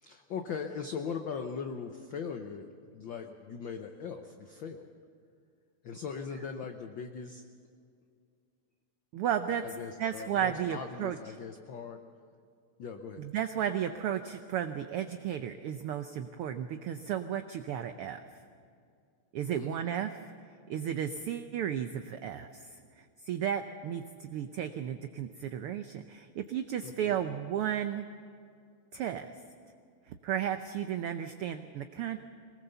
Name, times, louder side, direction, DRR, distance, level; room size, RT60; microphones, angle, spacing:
voice 1, 0.0-4.9 5.8-7.4 9.8-12.0 12.8-13.3 19.5-19.8 26.8-27.1, left 6 dB, 80° left, 5 dB, 1.0 m, -40 dB
voice 2, 9.1-11.2 13.2-18.2 19.3-20.3 20.7-28.0 28.9-29.3 30.1-32.2, right 9 dB, 85° right, 8 dB, 1.2 m, -34 dB
23.0 x 19.5 x 6.9 m, 2.3 s
omnidirectional pair, 3.4 m